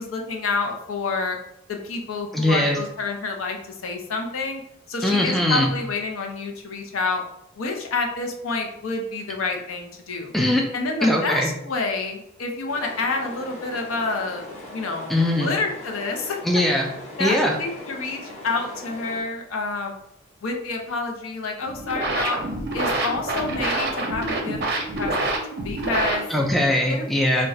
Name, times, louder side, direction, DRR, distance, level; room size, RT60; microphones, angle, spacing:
voice 1, 0.0-1.4 1.7-3.6 3.8-4.6 4.9-7.2 7.6-10.3 10.7-14.4 14.7-15.1 15.4-16.4 17.2-20.0 20.4-22.4 22.7-24.6 25.0-25.3 25.6-26.2 26.9-27.1 27.3-27.5, left 3 dB, 80° left, 3 dB, 0.5 m, -28 dB
voice 2, 2.3-2.8 5.0-5.7 10.3-10.6 11.0-11.5 15.1-15.5 16.4-16.9 17.2-17.6 26.3-27.5, left 1 dB, ahead, 0 dB, 0.3 m, -20 dB
sound 1, 12.7-19.2, left 1 dB, 30° left, 0.8 m, -40 dB
sound 2, 21.6-26.6, right 2 dB, 50° right, 0.6 m, -27 dB
2.4 x 2.2 x 4.0 m, 0.78 s
head